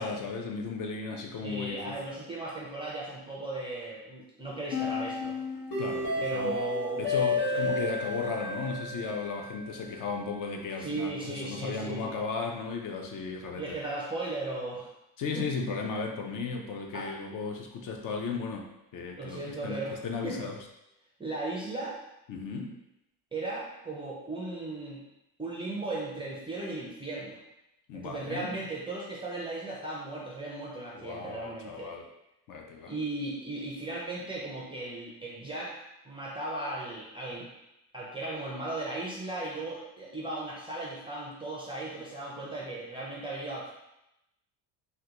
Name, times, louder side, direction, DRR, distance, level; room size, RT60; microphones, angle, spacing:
voice 1, 0.0-2.0 5.8-6.6 7.0-13.8 15.2-20.6 22.3-22.7 27.9-28.5 30.9-32.1 32.5-32.9, left 4 dB, 50° left, 2 dB, 0.5 m, -35 dB
voice 2, 1.4-5.4 6.2-7.1 7.5-7.6 10.8-12.1 13.6-14.9 15.3-15.5 16.9-17.1 19.2-20.4 21.2-22.0 23.3-25.0 25.4-27.4 27.9-31.9 32.9-35.8 36.0-37.5 37.9-43.7, right 2 dB, 15° right, -4 dB, 0.3 m, -36 dB
sound 1, 4.7-9.8, left 3 dB, 70° left, 1.2 m, -31 dB
3.6 x 2.2 x 2.8 m, 0.89 s
cardioid pair, 145°, 43 cm